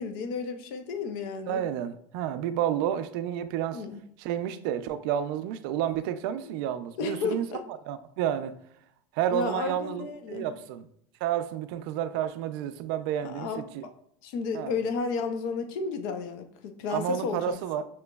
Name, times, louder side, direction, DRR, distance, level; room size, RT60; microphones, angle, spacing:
voice 1, 0.0-1.6 3.7-4.0 7.0-7.6 9.3-10.5 13.2-13.6 14.2-17.6, left 5 dB, 65° left, 0.6 m, -32 dB
voice 2, 1.5-3.8 4.2-7.4 7.8-8.5 9.1-10.9 11.2-13.9 14.5-14.7 16.9-17.8, right 10 dB, 60° right, 0.4 m, -30 dB
6.1 x 3.0 x 2.2 m
supercardioid pair, 160°, 13 cm